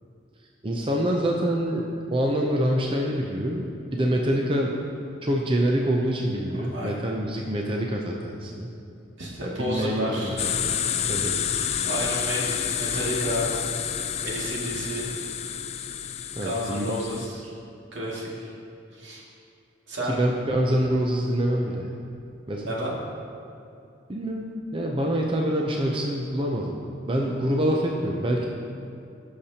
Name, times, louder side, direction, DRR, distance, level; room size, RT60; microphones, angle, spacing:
voice 1, 0.6-3.6 3.9-4.8 5.2-8.7 9.4-10.3 10.6-10.7 11.1-11.3 16.4-16.9 20.1-21.9 22.5-22.7 24.1-26.8 27.1-28.5, right 1 dB, 30° right, 0 dB, 0.6 m, -25 dB
voice 2, 6.6-7.0 9.2-10.5 11.8-13.5 14.2-15.1 16.4-17.5 17.9-18.5 18.9-19.2 19.9-20.2 22.6-23.0, equal, 80° right, -5 dB, 2.2 m, -31 dB
sound 1, 10.4-17.3, left 8 dB, 35° left, 0.3 m, -29 dB
16.0 x 6.7 x 2.9 m, 2.6 s
head